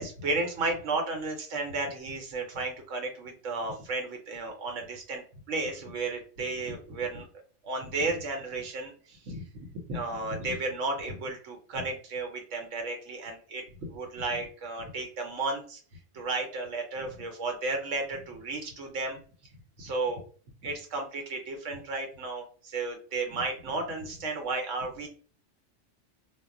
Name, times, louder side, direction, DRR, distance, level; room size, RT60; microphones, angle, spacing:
voice 1, 0.0-7.3 7.6-15.8 16.1-19.2 19.8-20.2 20.6-25.1, right 3 dB, 80° right, 3 dB, 1.0 m, -33 dB
2.2 x 2.1 x 3.6 m, 0.43 s
omnidirectional pair, 1.3 m